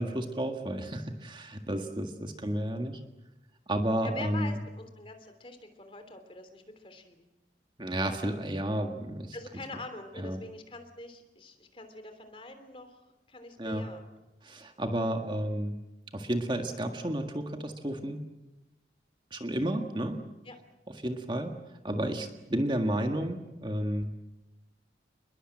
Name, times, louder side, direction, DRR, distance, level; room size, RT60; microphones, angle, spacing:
voice 1, 0.0-3.0 3.7-4.5 7.8-9.4 10.2-10.4 13.6-13.9 14.4-15.8 16.1-18.2 19.3-20.2 21.0-21.5 21.8-24.1, right 1 dB, 25° right, 4 dB, 1.7 m, -31 dB
voice 2, 4.0-7.3 9.3-14.1 20.4-20.6, left 2 dB, 30° left, 7 dB, 3.2 m, -45 dB
29.0 x 21.5 x 7.8 m, 0.99 s
head